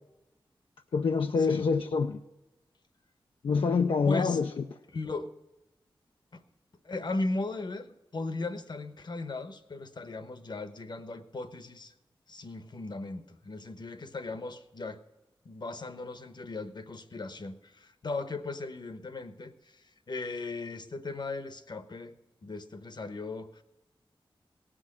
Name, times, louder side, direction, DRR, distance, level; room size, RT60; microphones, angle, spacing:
voice 1, 0.9-2.2 3.4-4.5, left 5 dB, 75° left, 0.5 m, -26 dB
voice 2, 4.0-4.4 4.9-5.3 6.3-6.4 6.8-11.9 12.3-15.0 15.4-22.1 22.4-23.6, left 2 dB, 55° left, 1.1 m, -37 dB
17.5 x 6.3 x 7.6 m
wide cardioid pair, 75°, 9 cm